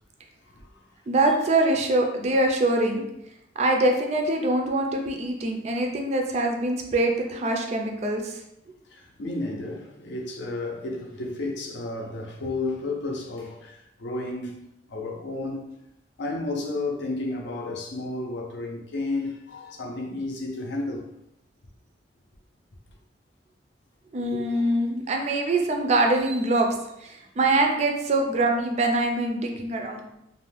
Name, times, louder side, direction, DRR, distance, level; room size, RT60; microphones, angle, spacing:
voice 1, 1.1-3.0 3.6-8.3 24.1-26.7 27.0-30.1, right 2 dB, 40° right, 0.3 m, -24 dB
voice 2, 8.9-15.7 16.2-21.1, left 2 dB, 75° left, 0.5 m, -32 dB
2.5 x 2.1 x 3.2 m
head